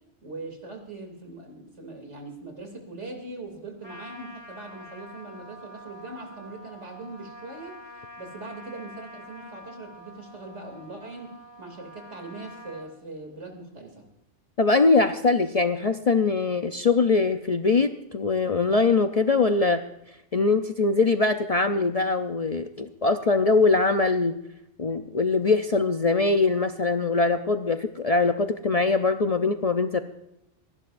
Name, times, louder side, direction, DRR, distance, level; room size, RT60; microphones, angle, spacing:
voice 1, 0.2-7.8 8.2-14.1, right 2 dB, 75° right, 3 dB, 3.1 m, -41 dB
Trumpet, 3.8-12.9, equal, 20° left, 1.9 m, -46 dB
voice 2, 14.6-19.8 20.3-24.3 24.8-30.0, left 3 dB, 45° left, 7 dB, 0.5 m, -22 dB
28.0 x 11.0 x 2.6 m, 0.86 s
omnidirectional pair, 1.2 m